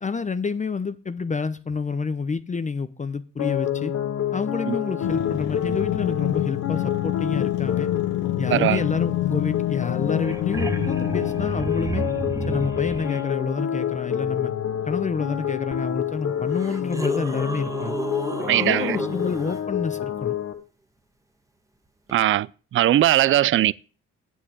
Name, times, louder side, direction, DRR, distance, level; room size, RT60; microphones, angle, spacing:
voice 1, 0.0-3.9 4.3-7.9 8.4-12.0 12.5-14.5 14.9-18.0 18.6-20.4, left 5 dB, 25° left, 0.7 m, -28 dB
sound 1, 3.4-20.5, left 10 dB, 60° left, 1.5 m, -28 dB
sound 2, 5.0-11.8, left 15 dB, 85° left, 1.1 m, -28 dB
sound 3, 9.8-9.9 10.1-13.2 15.7-15.8 16.5-19.6 22.1-22.2, right 1 dB, 10° right, 1.3 m, -31 dB
voice 2, 18.5-19.0 22.1-22.5 22.7-23.7, right 13 dB, 45° right, 0.4 m, -19 dB
8.4 x 6.1 x 8.0 m
cardioid pair, 90°, 30 cm